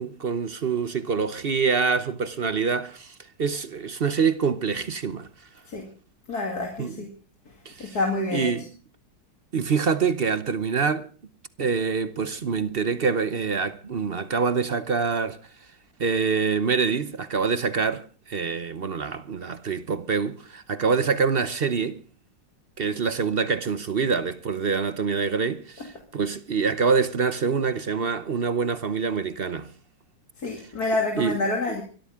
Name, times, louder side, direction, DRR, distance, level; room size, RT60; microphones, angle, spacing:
voice 1, 0.0-5.3 6.8-6.9 7.6-8.0 8.3-8.7 9.5-11.1 11.6-15.4 16.0-22.0 22.8-29.7 31.2-31.4, right 5 dB, 45° right, 0.8 m, -25 dB
voice 2, 6.3-7.1 7.8-8.5 30.4-31.8, left 2 dB, 55° left, 2.9 m, -27 dB
24.0 x 13.0 x 3.7 m
omnidirectional pair, 2.0 m